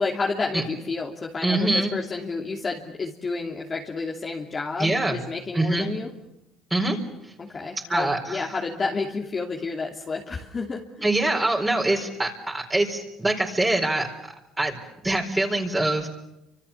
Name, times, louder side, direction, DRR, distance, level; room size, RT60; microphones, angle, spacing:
voice 1, 0.0-6.1 7.4-11.0, left 4 dB, 30° left, -1 dB, 2.8 m, -30 dB
voice 2, 1.4-1.9 4.8-5.2 5.5-5.9 6.7-7.0 7.9-8.4 11.0-14.1 14.6-14.8 15.0-16.1, right 2 dB, 15° right, 0 dB, 4.3 m, -24 dB
29.5 x 26.0 x 7.3 m, 0.89 s
supercardioid pair, 100°, 0 cm